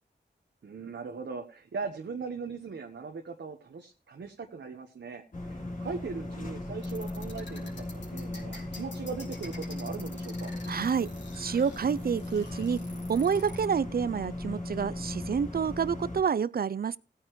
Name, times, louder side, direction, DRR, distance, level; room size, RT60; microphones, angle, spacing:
voice 1, 0.6-10.5, right 5 dB, 80° right, 1.1 m, -39 dB
sound 1, 5.3-16.2, left 1 dB, 45° left, 2.8 m, -37 dB
sound 2, 6.8-13.7, left 2 dB, 75° left, 3.4 m, -48 dB
voice 2, 10.7-11.1 11.4-12.8 13.1-17.0, right 6 dB, 55° right, 0.5 m, -28 dB
16.0 x 9.4 x 3.1 m
cardioid pair, 40°, 19 cm